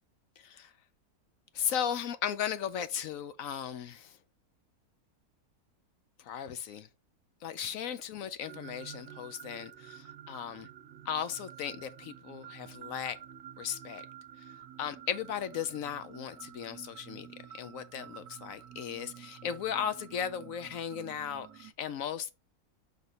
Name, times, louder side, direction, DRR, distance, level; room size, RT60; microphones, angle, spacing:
voice 1, 1.5-4.2 6.2-6.9 7.4-10.7 11.1-13.2 13.6-14.0 14.8-17.3 17.5-22.3, left 8 dB, 65° left, 1.0 m, -36 dB
sound 1, 8.4-21.7, right 10 dB, 85° right, 1.2 m, -50 dB
5.9 x 3.6 x 5.1 m
omnidirectional pair, 1.6 m